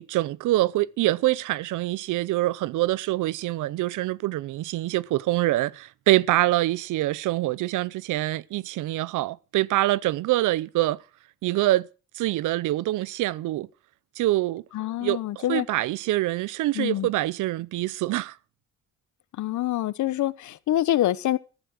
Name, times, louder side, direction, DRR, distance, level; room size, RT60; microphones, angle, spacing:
voice 1, 0.0-11.0 11.4-11.9 12.2-13.7 14.2-14.6 15.0-18.3, right 16 dB, 80° right, 0.7 m, -25 dB
voice 2, 14.7-15.7 16.7-17.1 19.4-21.4, left 13 dB, 70° left, 1.0 m, -26 dB
14.0 x 10.0 x 6.4 m
cardioid pair, 90°, 30 cm